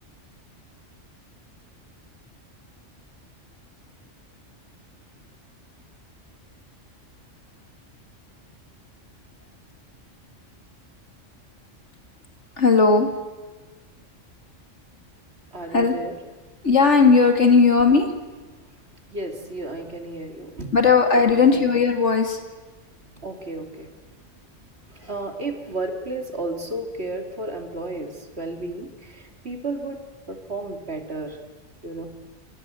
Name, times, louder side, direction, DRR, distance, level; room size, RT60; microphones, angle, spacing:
voice 1, 12.6-13.1 15.7-15.9 16.6-18.1 20.7-22.4, left 4 dB, 65° left, 5 dB, 2.8 m, -17 dB
voice 2, 15.5-16.2 19.1-20.8 21.2-21.7 23.2-23.9 24.8-30.0 30.3-31.4 31.8-32.1, right 2 dB, 55° right, 4 dB, 3.2 m, -33 dB
28.5 x 24.5 x 7.8 m, 1.3 s
omnidirectional pair, 1.3 m